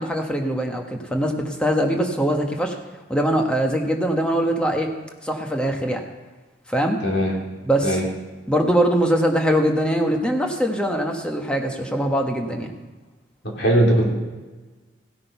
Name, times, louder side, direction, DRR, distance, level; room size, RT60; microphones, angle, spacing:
voice 1, 0.0-2.8 3.1-4.9 5.2-6.0 6.7-7.0 7.6-8.0 8.5-12.7, equal, 5° left, 2 dB, 1.2 m, -22 dB
voice 2, 7.0-7.3 7.8-8.0 13.4-14.1, right 1 dB, 70° left, -2 dB, 3.2 m, -19 dB
16.0 x 8.6 x 5.7 m, 1.3 s
head